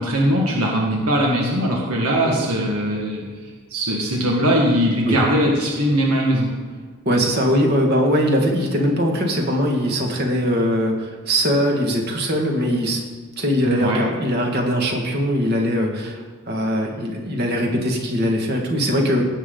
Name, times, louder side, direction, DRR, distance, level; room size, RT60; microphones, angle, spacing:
voice 1, 0.0-3.3 3.7-6.5 13.6-14.0, equal, 85° right, -2 dB, 1.7 m, -20 dB
voice 2, 2.2-2.6 5.1-5.2 7.1-13.0 13.4-16.2 16.5-19.2, equal, 45° right, 1 dB, 1.9 m, -21 dB
17.5 x 7.3 x 3.9 m, 1.5 s
head